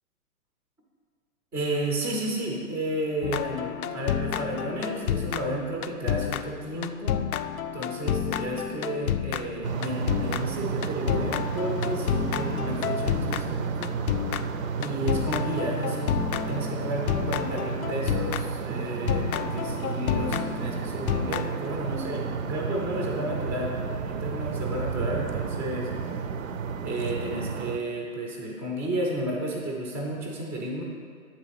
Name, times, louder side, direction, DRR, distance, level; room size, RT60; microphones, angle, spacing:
voice 1, 1.5-7.2 7.6-13.9 14.8-16.1 16.5-25.9 26.8-30.8, right 1 dB, 5° right, -1 dB, 0.5 m, -32 dB
sound 1, 3.2-18.7 19.1-21.5, left 9 dB, 75° left, 0.5 m, -30 dB
sound 2, 9.6-27.8, right 5 dB, 65° right, 0.6 m, -32 dB
8.5 x 4.0 x 5.7 m, 2.2 s
hypercardioid pair, 135°, 44 cm